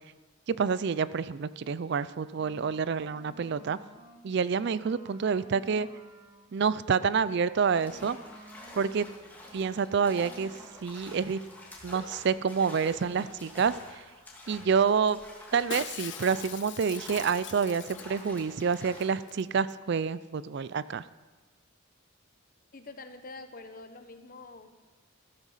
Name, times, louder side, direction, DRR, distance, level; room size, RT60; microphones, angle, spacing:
voice 1, 0.5-3.8 4.2-5.9 6.5-8.2 8.8-9.1 9.5-10.5 10.8-11.4 11.8-14.0 14.5-15.2 15.5-21.0, right 6 dB, 55° right, 16 dB, 0.4 m, -28 dB
sound 1, 2.0-4.2 4.6-8.9 9.2-11.2, right 1 dB, 20° right, 1.3 m, -54 dB
sound 2, 7.7-19.3, left 1 dB, 10° left, 2.3 m, -49 dB
Shatter, 15.7-18.4 18.7-18.8 19.0-19.4 19.7-19.8, left 10 dB, 60° left, 0.6 m, -42 dB
voice 2, 22.7-24.7, left 3 dB, 45° left, 8 dB, 1.2 m, -46 dB
14.5 x 12.0 x 5.6 m, 1.3 s
head